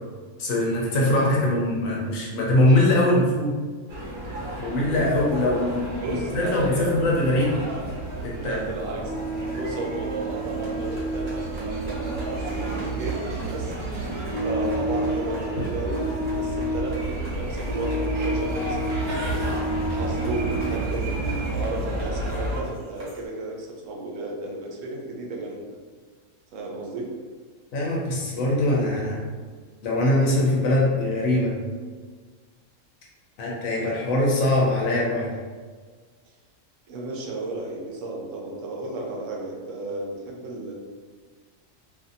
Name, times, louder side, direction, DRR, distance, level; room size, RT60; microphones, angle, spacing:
voice 1, 0.4-3.6 4.6-7.6 8.2-8.6 27.7-29.2 29.8-31.6 33.4-35.3, left 1 dB, 90° left, -4 dB, 1.1 m, -22 dB
sound 1, 3.9-22.6, right 2 dB, 55° right, 1.2 m, -31 dB
voice 2, 5.9-6.9 8.4-9.1 9.5-13.8 14.4-16.1 16.3-19.4 19.9-25.7 26.5-27.1 36.9-40.7, right 2 dB, 80° right, -1 dB, 1.0 m, -33 dB
sound 2, 9.0-23.2, equal, 35° right, 0.8 m, -32 dB
2.7 x 2.6 x 2.5 m, 1.5 s
omnidirectional pair, 1.3 m